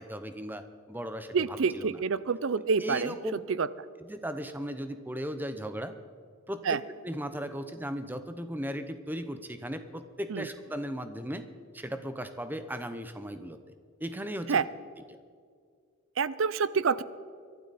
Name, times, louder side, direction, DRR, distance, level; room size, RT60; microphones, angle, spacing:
voice 1, 0.0-2.0 2.8-3.4 4.0-5.9 6.5-6.8 7.0-11.4 11.7-13.6 14.0-14.6, equal, 10° right, 9 dB, 0.8 m, -37 dB
voice 2, 1.3-3.1 3.6-3.7 6.6-6.8 10.3-10.5 14.5-14.6 16.2-17.0, right 5 dB, 65° right, 17 dB, 0.5 m, -27 dB
23.5 x 12.0 x 4.2 m, 2.1 s
head